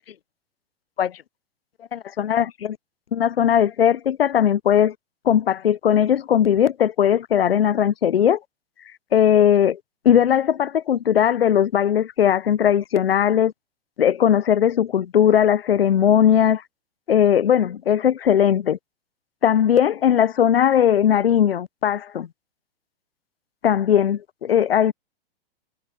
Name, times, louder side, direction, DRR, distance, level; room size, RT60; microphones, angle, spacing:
voice 1, 1.9-2.8 3.1-4.9 5.3-8.4 9.1-9.8 10.0-13.5 14.0-16.6 17.1-18.8 19.4-22.3 23.6-24.9, left 9 dB, 70° left, 0.7 m, -18 dB
figure-of-eight pair, 105°, 30 cm